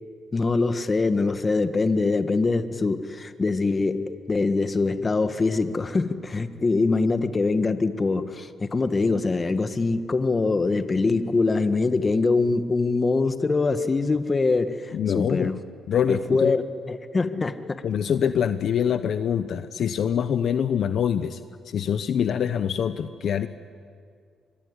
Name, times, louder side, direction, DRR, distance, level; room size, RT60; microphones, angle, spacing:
voice 1, 0.3-15.6 16.1-16.6 16.9-17.8, left 3 dB, 30° left, 10 dB, 1.6 m, -23 dB
voice 2, 14.9-15.5 15.9-16.5 17.8-23.5, left 8 dB, 65° left, 11 dB, 0.9 m, -25 dB
24.5 x 23.5 x 9.9 m, 2.2 s
cardioid pair, 90°, 0 cm